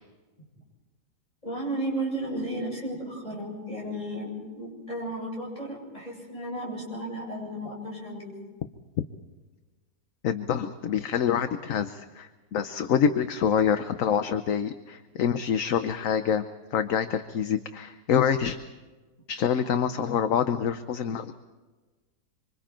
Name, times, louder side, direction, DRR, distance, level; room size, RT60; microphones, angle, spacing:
voice 1, 1.4-8.3, right 1 dB, 25° left, -3 dB, 7.9 m, -34 dB
voice 2, 10.2-16.4 16.7-18.6 19.3-21.3, left 8 dB, 60° left, 9 dB, 1.1 m, -26 dB
26.0 x 25.5 x 4.4 m, 1.3 s
omnidirectional pair, 1.7 m